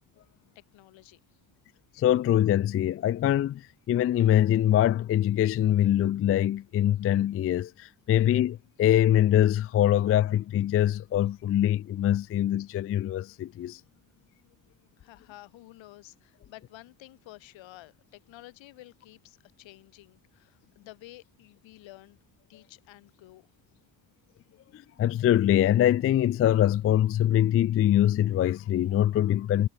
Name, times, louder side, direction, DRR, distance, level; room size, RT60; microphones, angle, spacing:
voice 1, 0.6-1.4 15.0-22.2 22.5-23.5, left 17 dB, 80° left, 5.2 m, -51 dB
voice 2, 2.0-3.6 3.9-13.8 24.7-29.7, left 12 dB, 35° left, 0.4 m, -23 dB
cardioid pair, 95°, 45 cm